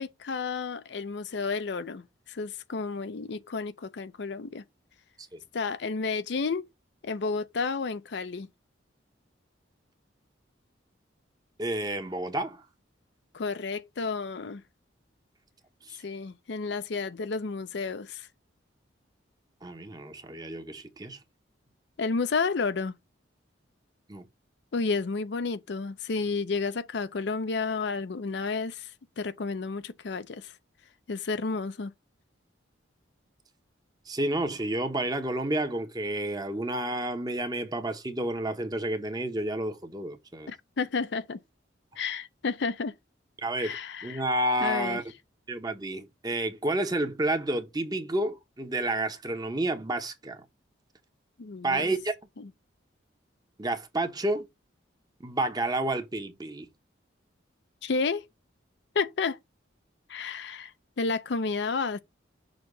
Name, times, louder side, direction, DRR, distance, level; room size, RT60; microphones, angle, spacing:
voice 1, 0.0-4.6 5.5-6.6 7.0-8.5 13.3-14.6 16.0-18.3 22.0-22.9 24.7-28.9 29.2-30.5 31.1-31.9 40.5-41.4 42.0-42.9 43.6-44.2 44.6-45.0 51.4-51.9 57.8-58.2 58.9-59.4 60.1-60.7 61.0-62.0, left 4 dB, 60° left, 0.5 m, -31 dB
voice 2, 11.6-12.6 15.8-16.0 19.6-21.2 24.1-24.3 34.1-40.5 43.4-43.7 44.0-45.0 45.5-50.4 51.6-52.1 53.6-54.5 55.2-56.7, right 1 dB, 20° right, 0.9 m, -30 dB
6.4 x 2.9 x 5.2 m
head